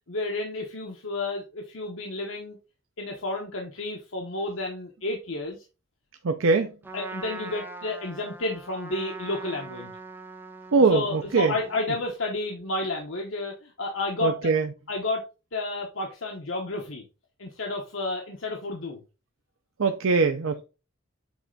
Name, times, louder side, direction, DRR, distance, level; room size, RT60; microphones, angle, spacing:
voice 1, 0.1-2.6 3.0-5.6 6.9-9.9 10.9-14.5 14.9-15.2 15.5-17.0 17.4-19.0, left 2 dB, 75° left, 1.1 m, -31 dB
voice 2, 6.2-6.7 10.7-11.5 14.2-14.7 19.8-20.6, right 4 dB, 85° right, 0.6 m, -22 dB
Trumpet, 6.8-12.1, right 3 dB, 10° right, 0.8 m, -42 dB
8.2 x 3.3 x 4.0 m
head